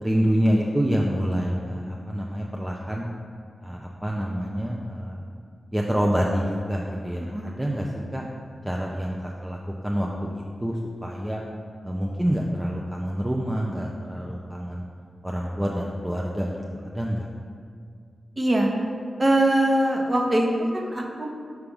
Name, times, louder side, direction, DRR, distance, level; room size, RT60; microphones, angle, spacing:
voice 1, 0.0-3.1 3.6-5.2 5.7-7.9 8.1-8.2 8.6-9.6 9.8-11.4 11.8-14.8 15.2-16.5 16.8-17.3, equal, 10° right, -2 dB, 0.6 m, -27 dB
voice 2, 7.2-7.5 18.4-18.7 19.2-20.5 20.7-21.3, right 1 dB, 30° right, 0 dB, 1.0 m, -22 dB
5.9 x 3.3 x 5.4 m, 2.2 s
cardioid pair, 50°, 0 cm